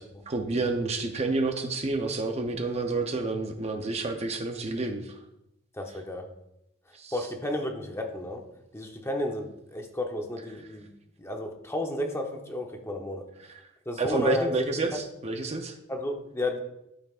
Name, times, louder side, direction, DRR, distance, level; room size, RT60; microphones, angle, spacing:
voice 1, 0.3-5.0 7.0-7.1 14.0-15.7, right 3 dB, 30° right, 5 dB, 0.6 m, -29 dB
voice 2, 5.8-6.3 7.1-8.4 8.7-10.9 11.2-13.3 13.9-14.5 14.9-15.0 15.9-16.6, left 2 dB, 10° left, 3 dB, 0.8 m, -32 dB
13.0 x 5.8 x 2.5 m, 0.83 s
head